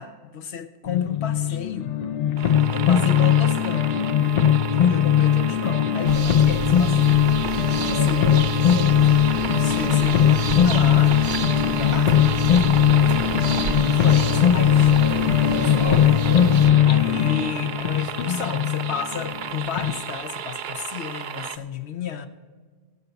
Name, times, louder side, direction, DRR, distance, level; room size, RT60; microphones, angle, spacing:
voice 1, 0.0-1.9 2.7-4.0 4.6-7.2 7.8-8.3 9.6-12.1 13.0-16.2 16.8-22.3, left 7 dB, 80° left, 1.1 m, -33 dB
sound 1, 0.9-20.0, left 9 dB, 50° left, 0.5 m, -19 dB
sound 2, 2.4-21.6, right 9 dB, 55° right, 0.6 m, -33 dB
sound 3, 6.0-16.7, right 6 dB, 70° right, 1.0 m, -32 dB
18.5 x 6.9 x 5.2 m
omnidirectional pair, 1.1 m